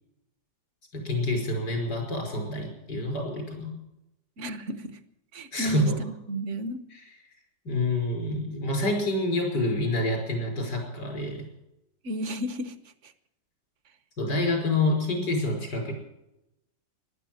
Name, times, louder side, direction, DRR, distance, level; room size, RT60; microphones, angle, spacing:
voice 1, 0.9-3.8 5.5-6.0 6.9-7.0 7.6-11.5 14.2-15.9, left 2 dB, 85° left, 2 dB, 5.9 m, -27 dB
voice 2, 4.4-5.0 5.3-6.8 12.0-12.7 13.0-13.1, equal, 50° right, 12 dB, 1.2 m, -33 dB
15.0 x 11.5 x 7.7 m, 0.88 s
omnidirectional pair, 1.8 m